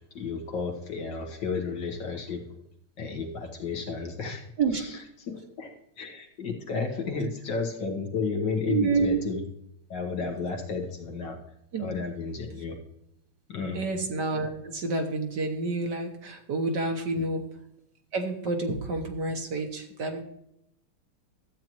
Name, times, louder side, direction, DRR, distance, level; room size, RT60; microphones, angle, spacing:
voice 1, 0.1-2.4 3.0-4.5 4.7-5.0 5.3-9.4 9.9-11.4 11.8-12.8 13.5-13.8 17.2-17.3, left 4 dB, 60° left, 2 dB, 1.9 m, -32 dB
voice 2, 8.7-9.2 11.7-11.9 13.7-17.4 18.1-20.2, right 3 dB, 60° right, 4 dB, 1.5 m, -28 dB
13.0 x 8.5 x 3.0 m, 0.79 s
omnidirectional pair, 2.4 m